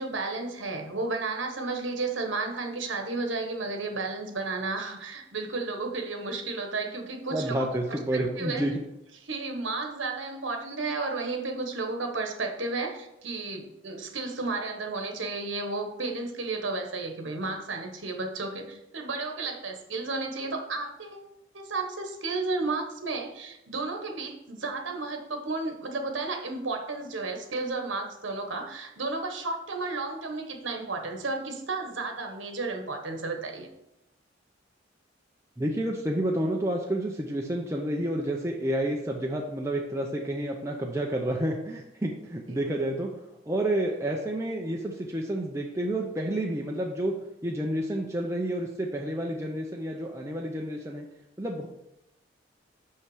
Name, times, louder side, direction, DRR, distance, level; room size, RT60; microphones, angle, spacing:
voice 1, 0.0-8.6 9.3-21.3 21.5-33.7 42.5-42.6, right 3 dB, 75° right, 4 dB, 1.2 m, -33 dB
voice 2, 7.3-8.7 35.6-47.1 47.4-51.0 51.4-51.7, right 1 dB, 15° right, -1 dB, 0.6 m, -30 dB
5.9 x 5.6 x 4.9 m, 0.85 s
head